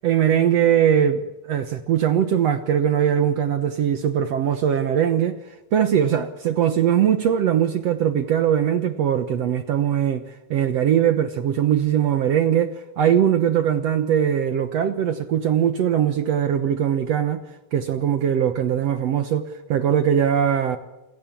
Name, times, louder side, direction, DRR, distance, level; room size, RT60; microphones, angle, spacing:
voice 1, 0.0-5.4 5.7-10.2 10.5-17.4 17.7-20.8, right 9 dB, 70° right, 1.6 m, -21 dB
28.0 x 17.0 x 7.4 m
omnidirectional pair, 4.2 m